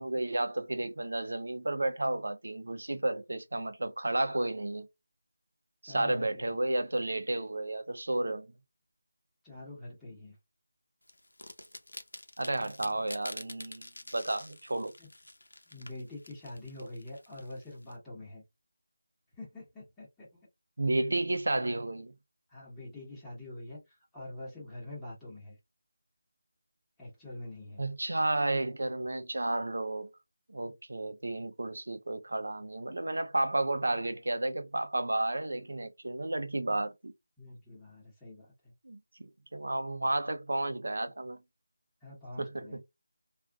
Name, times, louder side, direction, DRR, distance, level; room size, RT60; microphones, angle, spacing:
voice 1, 0.0-4.9 5.8-8.5 12.4-14.9 20.8-22.1 27.8-30.1 30.5-37.1 38.8-41.4 42.4-42.7, right 2 dB, 70° right, 0.6 m, -32 dB
voice 2, 5.8-6.6 9.4-10.4 15.0-15.1 15.7-18.4 19.3-20.5 21.0-21.1 22.5-25.6 27.0-27.8 37.4-38.7 42.0-42.8, left 1 dB, 5° left, 1.1 m, -45 dB
sound 1, 11.1-17.9, left 1 dB, 80° left, 0.7 m, -48 dB
3.4 x 2.4 x 2.3 m
figure-of-eight pair, 165°, 0 cm